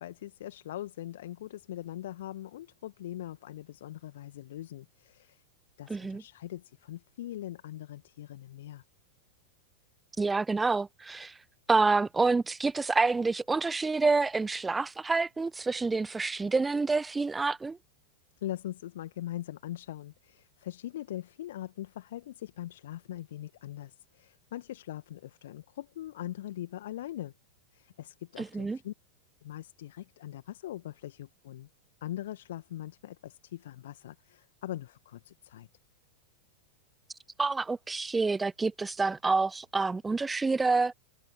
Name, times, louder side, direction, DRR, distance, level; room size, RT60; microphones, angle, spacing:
voice 1, 0.0-5.4 5.8-8.8 18.4-27.3 27.7-28.9 29.4-31.7 32.0-35.7, left 13 dB, 60° left, 2.1 m, -41 dB
voice 2, 5.9-6.2 10.2-11.3 11.7-17.8 28.4-28.8 37.4-40.9, right 3 dB, 10° right, 0.5 m, -28 dB
figure-of-eight pair, 90°, 0 cm